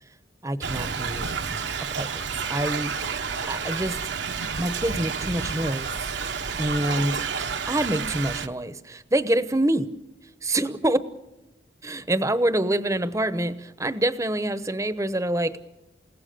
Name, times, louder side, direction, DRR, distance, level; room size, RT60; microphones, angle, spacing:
voice 1, 0.4-1.3 1.9-4.0 4.6-6.1 6.6-7.3 7.7-9.9 10.4-11.0 11.8-15.6, right 1 dB, 15° right, 13 dB, 0.9 m, -26 dB
Thunder / Rain, 0.6-8.5, right 5 dB, 70° right, 1.1 m, -30 dB
29.0 x 17.0 x 6.8 m, 1.0 s
head